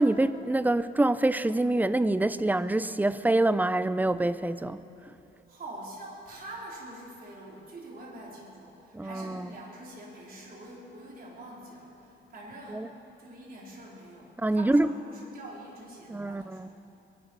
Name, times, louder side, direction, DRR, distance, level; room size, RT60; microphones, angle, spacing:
voice 1, 0.0-4.8 8.9-9.5 12.7-12.9 14.4-14.9 16.1-16.7, right 2 dB, 10° right, 0.5 m, -26 dB
voice 2, 5.5-12.9 13.2-16.7, right 1 dB, 50° right, 4.3 m, -45 dB
23.0 x 12.0 x 4.7 m
cardioid pair, 90°, 20 cm